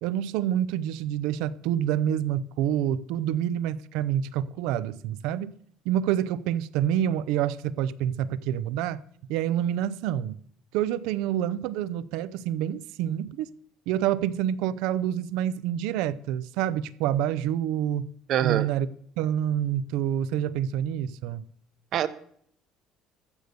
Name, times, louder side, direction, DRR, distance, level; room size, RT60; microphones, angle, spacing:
voice 1, 0.0-5.5 5.8-9.0 9.3-10.4 10.7-13.5 13.9-18.1 18.4-18.9 19.2-21.4, right 10 dB, 90° right, 0.6 m, -27 dB
voice 2, 18.3-18.7 21.9-22.1, right 10 dB, 40° right, 0.8 m, -24 dB
14.5 x 6.8 x 6.8 m
cardioid pair, 180°, 0 cm